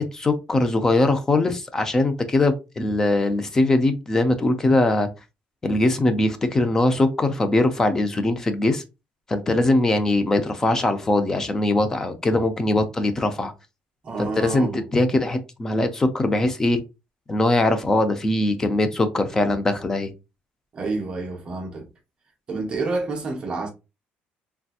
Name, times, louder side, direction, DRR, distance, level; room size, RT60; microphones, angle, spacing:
voice 1, 0.0-5.1 5.6-8.8 9.3-13.5 14.2-16.8 17.3-20.1, left 2 dB, 15° left, 0.4 m, -21 dB
voice 2, 14.0-14.8 20.7-21.9 22.5-23.7, right 3 dB, 25° right, 0.7 m, -28 dB
3.3 x 2.7 x 2.3 m
cardioid pair, 180°, 4 cm